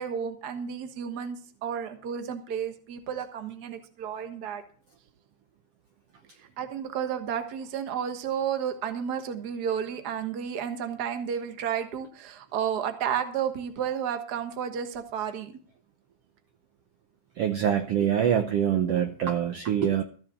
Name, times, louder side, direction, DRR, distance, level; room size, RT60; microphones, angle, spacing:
voice 1, 0.0-4.6 6.6-15.5, right 8 dB, 45° right, 8 dB, 1.4 m, -32 dB
voice 2, 17.4-20.0, right 9 dB, 70° right, 7 dB, 1.6 m, -25 dB
14.0 x 6.5 x 7.0 m, 0.43 s
omnidirectional pair, 3.4 m